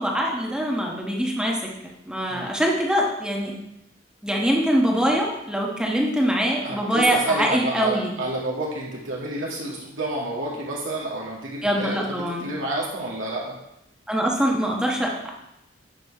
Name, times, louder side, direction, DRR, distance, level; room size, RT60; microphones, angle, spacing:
voice 1, 0.0-1.7 2.1-3.6 4.2-8.1 11.6-12.5 14.1-15.3, equal, 5° right, -1 dB, 1.2 m, -23 dB
voice 2, 6.6-13.6, right 2 dB, 85° right, -4 dB, 2.1 m, -29 dB
9.1 x 6.0 x 4.8 m, 0.84 s
head